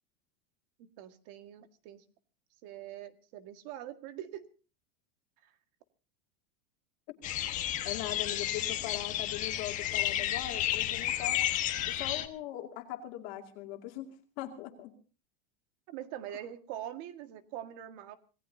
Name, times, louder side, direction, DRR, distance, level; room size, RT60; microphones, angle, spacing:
voice 1, 0.8-2.0 2.6-4.4 5.4-5.5 15.9-18.2, right 11 dB, 40° right, 8 dB, 1.9 m, -43 dB
sound 1, 7.2-12.3, left 13 dB, 25° left, 1.4 m, -32 dB
voice 2, 7.8-11.4 11.9-14.9, left 13 dB, 40° left, 3 dB, 2.4 m, -40 dB
26.5 x 18.5 x 2.8 m, 0.37 s
supercardioid pair, 175°, 31 cm